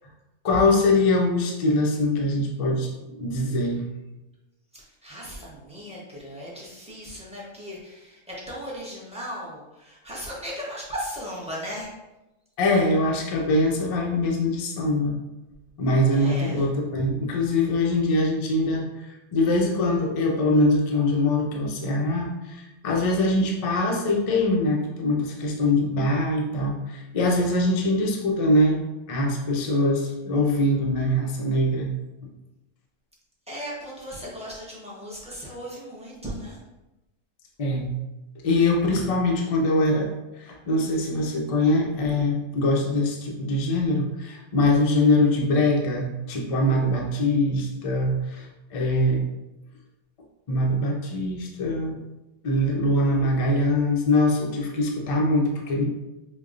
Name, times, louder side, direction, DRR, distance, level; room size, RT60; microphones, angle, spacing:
voice 1, 0.4-3.8 12.6-15.2 15.8-28.8 29.1-31.9 37.6-37.9 38.4-49.2 50.5-51.9 52.4-55.8, left 1 dB, 60° left, 0 dB, 0.3 m, -23 dB
voice 2, 4.7-11.9 16.1-16.7 33.5-36.6, equal, 5° right, -6 dB, 0.6 m, -37 dB
5.1 x 2.2 x 2.4 m, 1.0 s
omnidirectional pair, 1.4 m